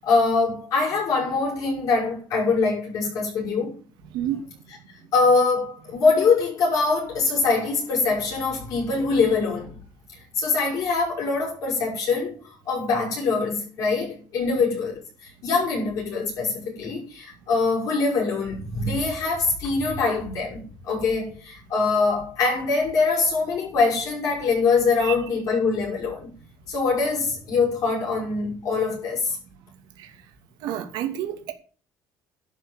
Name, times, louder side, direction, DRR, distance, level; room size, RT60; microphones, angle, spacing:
voice 1, 0.0-3.8 5.1-9.8 10.1-26.3 26.7-29.4, left 4 dB, 45° left, 6.1 m, -23 dB
voice 2, 30.6-31.5, right 11 dB, 70° right, 2.5 m, -29 dB
11.5 x 6.4 x 8.2 m
cardioid pair, 180°, 8 cm